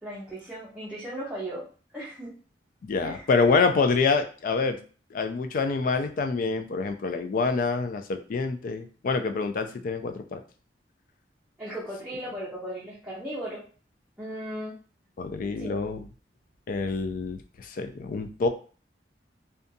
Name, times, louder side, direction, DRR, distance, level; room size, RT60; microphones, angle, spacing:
voice 1, 0.0-1.7 1.9-2.3 3.0-3.3 11.6-13.6 14.2-14.8 15.6-15.8, right 1 dB, 5° right, -8 dB, 0.6 m, -36 dB
voice 2, 2.8-4.8 5.1-10.4 15.2-16.1 16.7-18.5, left 4 dB, 50° left, 7 dB, 0.3 m, -26 dB
2.6 x 2.3 x 2.6 m, 0.39 s
head